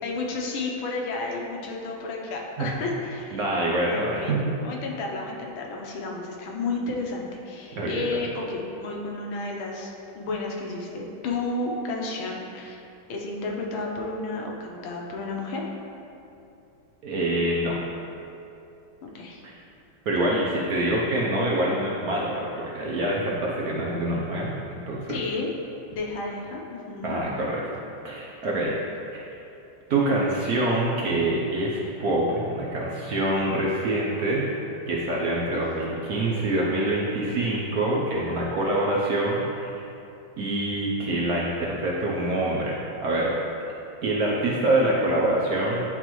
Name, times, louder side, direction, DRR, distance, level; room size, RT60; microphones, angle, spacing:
voice 1, 0.0-3.5 3.8-4.4 4.6-12.8 13.1-15.6 19.0-19.4 25.1-25.5 25.9-27.2 35.5-35.6, left 3 dB, 80° left, -1 dB, 1.6 m, -32 dB
voice 2, 3.3-4.5 7.8-8.1 17.0-17.8 19.4-19.6 20.1-25.1 27.0-27.6 28.0-28.7 29.1-29.2 29.9-34.4 34.9-39.9 40.4-43.3 44.0-45.8, right 1 dB, 65° right, -4 dB, 1.0 m, -25 dB
10.0 x 3.9 x 3.0 m, 2.7 s
omnidirectional pair, 2.2 m